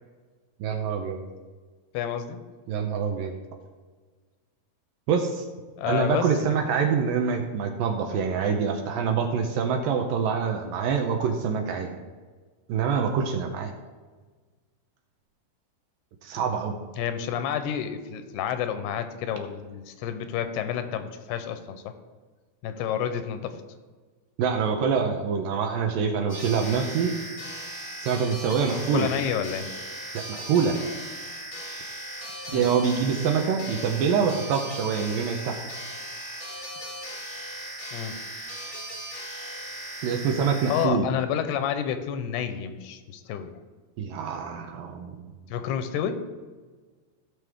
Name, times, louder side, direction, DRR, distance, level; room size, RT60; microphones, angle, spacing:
voice 1, 0.6-1.2 2.7-3.3 5.1-5.5 5.9-11.9 12.7-13.7 16.2-16.7 24.4-27.2 28.0-29.1 30.1-30.8 32.5-35.6 40.0-41.1 44.0-45.2, right 6 dB, 75° right, 4 dB, 2.3 m, -25 dB
voice 2, 1.9-2.4 5.8-6.6 17.0-21.9 22.6-23.6 28.9-29.7 32.5-32.7 37.9-38.2 40.7-43.5 45.5-46.1, left 9 dB, 85° left, 9 dB, 2.8 m, -30 dB
sound 1, 26.3-40.9, right 1 dB, 20° left, 0.8 m, -38 dB
15.0 x 6.5 x 3.6 m, 1.4 s
omnidirectional pair, 4.6 m